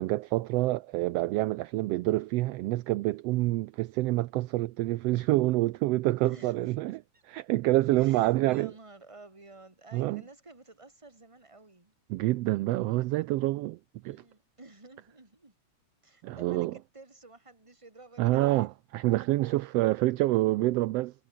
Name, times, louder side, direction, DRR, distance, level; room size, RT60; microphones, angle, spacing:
voice 1, 0.0-7.0 7.3-8.7 9.9-10.2 12.1-13.8 14.0-14.2 16.2-16.7 18.2-21.1, right 18 dB, 80° right, 1.5 m, -27 dB
voice 2, 6.2-7.2 8.0-11.9 14.0-15.5 16.0-18.7 19.5-19.7, right 2 dB, 10° right, 2.7 m, -52 dB
omnidirectional pair, 3.3 m